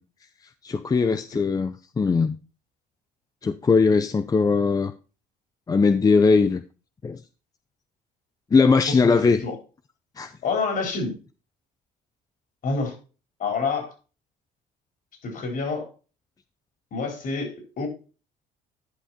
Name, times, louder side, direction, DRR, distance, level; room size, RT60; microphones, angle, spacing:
voice 1, 0.6-2.4 3.4-4.9 5.7-6.6 7.0-7.2 8.5-9.4 10.2-10.3, left 4 dB, 20° left, 0.5 m, -20 dB
voice 2, 8.9-9.5 10.4-11.2 12.6-12.9 13.4-13.9 15.2-15.9 16.9-17.9, left 4 dB, 55° left, 4.4 m, -28 dB
11.0 x 5.6 x 4.2 m
cardioid pair, 110°, 17 cm